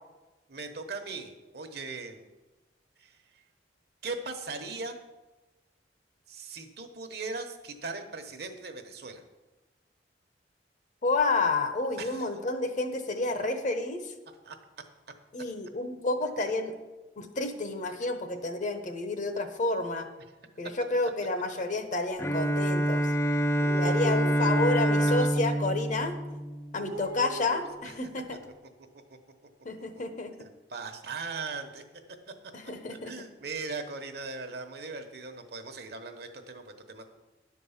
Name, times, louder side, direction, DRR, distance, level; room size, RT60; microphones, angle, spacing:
voice 1, 0.5-2.2 3.0-3.4 4.0-5.0 6.3-9.2 12.0-12.3 14.4-14.6 23.3-24.9 26.8-27.9 30.4-31.8 32.9-37.0, right 3 dB, 60° right, 6 dB, 1.0 m, -39 dB
voice 2, 11.0-14.1 15.3-16.8 17.2-20.1 20.6-23.1 23.8-26.2 26.7-28.4 29.6-30.3 32.5-33.1, left 2 dB, 45° left, 7 dB, 0.9 m, -30 dB
Bowed string instrument, 22.2-27.1, right 1 dB, 15° left, 0.4 m, -26 dB
10.5 x 4.6 x 7.2 m, 1.1 s
head